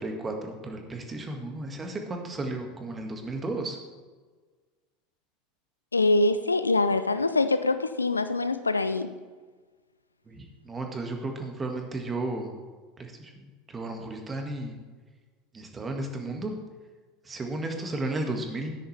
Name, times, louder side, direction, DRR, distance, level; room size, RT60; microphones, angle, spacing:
voice 1, 0.0-3.8 10.3-12.5 13.0-14.8 15.5-16.6 17.2-18.8, right 2 dB, 20° right, 3 dB, 1.9 m, -34 dB
voice 2, 5.9-9.1, left 2 dB, 85° left, 12 dB, 0.5 m, -24 dB
13.5 x 10.0 x 3.4 m, 1.4 s
figure-of-eight pair, 75°, 0 cm